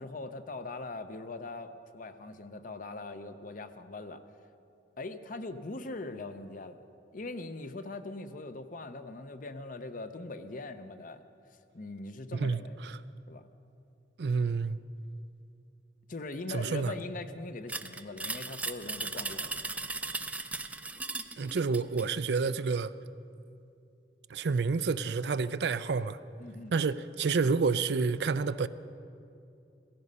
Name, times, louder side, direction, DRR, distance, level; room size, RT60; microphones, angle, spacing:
voice 1, 0.0-4.2 5.0-6.8 7.1-11.2 11.5-12.8 13.3-13.4 16.1-19.9 26.4-26.7, left 3 dB, 50° left, 0.8 m, -41 dB
voice 2, 12.4-13.0 14.2-14.8 16.5-16.9 21.4-22.9 24.3-26.2 26.7-28.7, right 4 dB, 70° right, 0.5 m, -29 dB
sound 1, 17.7-22.1, right 3 dB, 10° right, 0.5 m, -37 dB
16.5 x 16.0 x 5.5 m
head